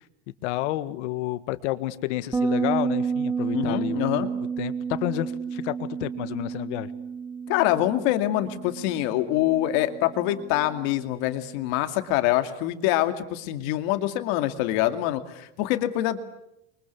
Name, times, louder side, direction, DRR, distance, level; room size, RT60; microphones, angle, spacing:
voice 1, 0.4-4.3 4.6-6.9, left 16 dB, 80° left, 13 dB, 1.7 m, -30 dB
Bass guitar, 2.3-11.7, right 6 dB, 10° right, 1.4 m, -31 dB
voice 2, 3.5-4.3 7.5-16.2, left 14 dB, 60° left, 8 dB, 2.4 m, -25 dB
29.5 x 24.0 x 8.3 m, 0.83 s
cardioid pair, 165°, 35 cm